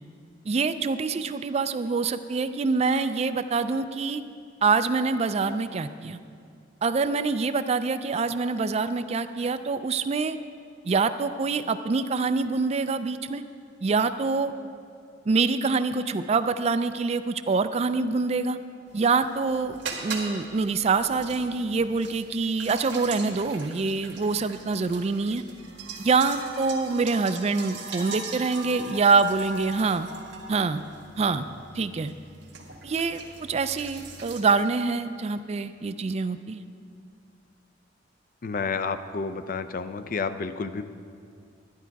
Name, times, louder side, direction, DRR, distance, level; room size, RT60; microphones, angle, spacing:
voice 1, 0.5-4.2 4.6-6.2 6.8-10.4 10.9-13.4 13.8-14.5 15.3-18.6 18.9-25.4 26.0-30.1 30.5-30.8 31.2-31.4 31.7-32.1 32.8-36.6, right 4 dB, 35° right, 11 dB, 0.4 m, -25 dB
sound 1, 18.9-34.4, right 4 dB, 80° right, 1.6 m, -41 dB
voice 2, 38.4-40.8, left 4 dB, 50° left, 11 dB, 0.5 m, -30 dB
11.5 x 11.0 x 4.6 m, 2.3 s
head